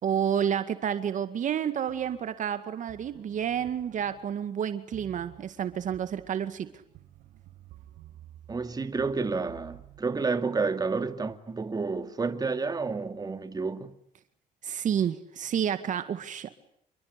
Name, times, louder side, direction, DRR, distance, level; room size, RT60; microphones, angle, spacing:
voice 1, 0.0-6.8 14.6-16.5, right 9 dB, 60° right, 2.0 m, -30 dB
sound 1, 1.9-10.0, right 13 dB, 85° right, 4.3 m, -53 dB
voice 2, 8.5-13.9, right 4 dB, 25° right, 2.3 m, -30 dB
28.5 x 23.5 x 8.3 m
cardioid pair, 85°, 15 cm